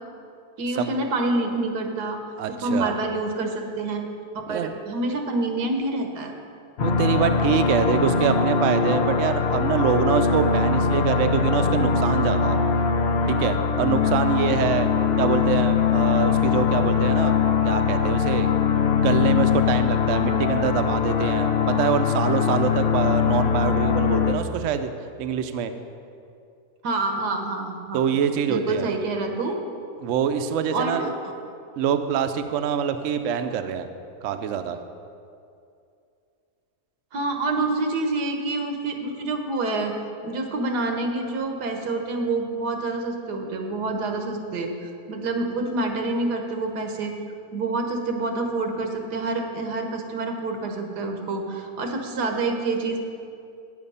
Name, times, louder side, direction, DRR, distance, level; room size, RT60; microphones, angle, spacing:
voice 1, 0.6-2.2 2.5-4.0 4.5-4.6 4.9-6.3 26.8-28.0 28.5-29.5 30.7-31.1 37.1-39.9 40.2-44.7 45.1-47.1 47.5-53.0, right 2 dB, 85° right, 3 dB, 1.5 m, -27 dB
voice 2, 2.4-2.9 4.5-4.7 6.8-12.6 13.3-14.9 15.2-17.4 17.6-18.5 18.9-24.9 25.2-25.7 27.9-28.9 30.0-31.1 31.8-33.9 34.2-34.8, right 7 dB, 65° right, 8 dB, 0.8 m, -25 dB
sound 1, 6.8-24.3, left 6 dB, 60° left, 0.7 m, -22 dB
9.3 x 7.2 x 5.5 m, 2.5 s
omnidirectional pair, 1.7 m